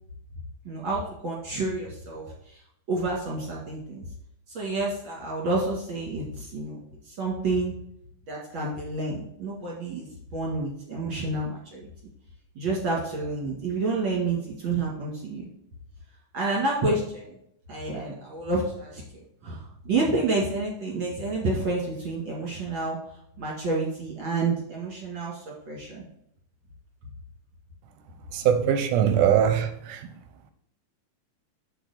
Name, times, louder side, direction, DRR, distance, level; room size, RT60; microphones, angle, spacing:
voice 1, 0.7-2.6 2.9-4.0 4.5-6.8 7.1-7.7 8.3-10.1 10.3-11.9 12.6-15.5 16.3-17.3 17.7-23.0 23.4-26.1, right 3 dB, 45° right, -3 dB, 2.0 m, -29 dB
voice 2, 28.3-30.1, right 9 dB, 80° right, 9 dB, 2.0 m, -22 dB
7.7 x 6.5 x 4.1 m, 0.73 s
omnidirectional pair, 3.9 m